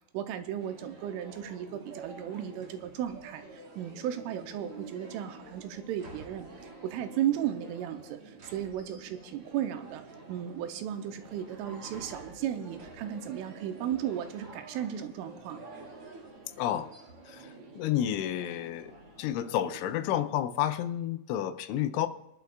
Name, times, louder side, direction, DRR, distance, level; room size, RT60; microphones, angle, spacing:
voice 1, 0.1-6.5 6.8-10.0 10.3-15.6, right 10 dB, 90° right, 7 dB, 3.2 m, -35 dB
sound 1, 0.6-20.2, right 3 dB, 55° right, 1.6 m, -48 dB
voice 2, 16.6-16.9 17.3-17.5 17.8-18.9 19.2-22.1, left 11 dB, 85° left, 10 dB, 3.0 m, -30 dB
23.0 x 11.5 x 2.4 m, 0.89 s
omnidirectional pair, 5.7 m